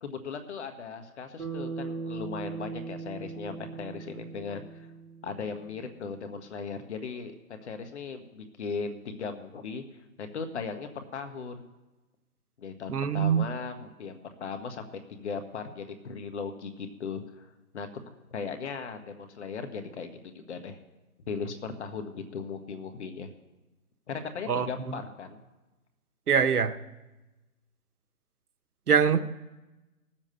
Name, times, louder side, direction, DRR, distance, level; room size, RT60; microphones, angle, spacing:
voice 1, 0.0-4.9 5.2-9.8 10.2-11.7 12.6-17.5 17.7-17.9 18.3-20.8 21.3-23.3 24.1-25.4, left 5 dB, 50° left, 7 dB, 1.6 m, -38 dB
Bass guitar, 1.4-5.8, right 4 dB, 55° right, 2.8 m, -39 dB
voice 2, 12.9-13.5 24.5-24.9 26.3-26.7 28.9-29.3, right 7 dB, 75° right, 9 dB, 1.1 m, -24 dB
17.5 x 7.5 x 6.8 m, 1.1 s
hypercardioid pair, 155°, 45 cm